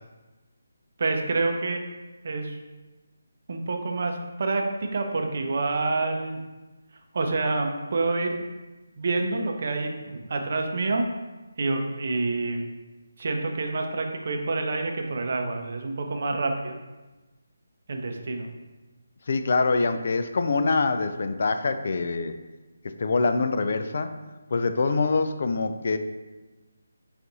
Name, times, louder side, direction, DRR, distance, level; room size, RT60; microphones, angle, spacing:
voice 1, 1.0-1.8 2.2-2.6 3.5-6.4 7.1-8.3 9.0-11.1 11.6-12.6 13.2-16.7 17.9-18.5, right 3 dB, 45° right, 3 dB, 0.6 m, -27 dB
voice 2, 19.3-22.3 23.0-24.1 24.5-26.0, left 3 dB, 50° left, 8 dB, 0.3 m, -24 dB
5.2 x 2.5 x 4.0 m, 1.2 s
figure-of-eight pair, 150°, 0 cm